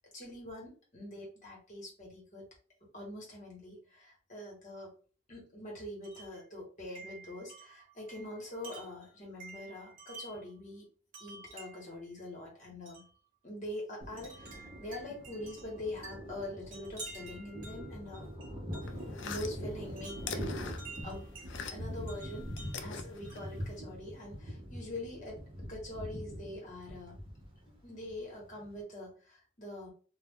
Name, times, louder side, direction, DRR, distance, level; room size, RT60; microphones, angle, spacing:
voice 1, 0.1-2.4 2.9-4.9 5.3-10.9 11.2-13.0 13.4-18.3 19.1-20.7 21.0-21.3 21.7-25.4 25.7-27.2 27.8-29.9, left 1 dB, 35° left, -1 dB, 1.1 m, -44 dB
Wind chime, 6.0-6.4 7.0-10.5 11.1-12.0 12.9-13.1 14.2-19.1 20.0-21.5 22.1-23.6, right 3 dB, 40° right, 1.0 m, -51 dB
Thunder, 14.0-28.8, equal, 25° right, 0.7 m, -43 dB
sound 1, 18.8-22.0 22.3-23.8, left 6 dB, 55° left, 0.3 m, -44 dB
2.4 x 2.1 x 3.5 m, 0.38 s
head